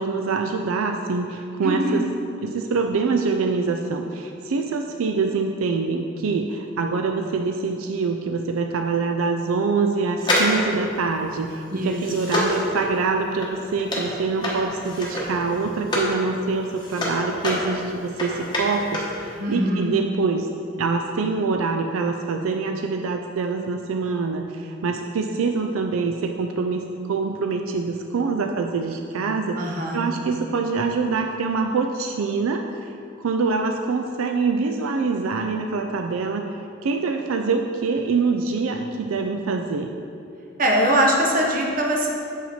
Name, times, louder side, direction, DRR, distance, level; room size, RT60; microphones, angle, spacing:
voice 1, 0.0-2.1 2.4-20.5 20.8-32.8 33.2-36.5 36.8-39.9, right 4 dB, 80° right, 4 dB, 0.4 m, -25 dB
voice 2, 1.6-2.0 11.7-12.0 19.4-19.9 29.6-30.1 40.6-42.1, right 1 dB, 40° right, 0 dB, 1.0 m, -22 dB
sound 1, 10.2-16.2 16.5-19.2 19.4-19.5, left 1 dB, 20° left, 1.1 m, -27 dB
7.5 x 5.6 x 4.3 m, 2.6 s
head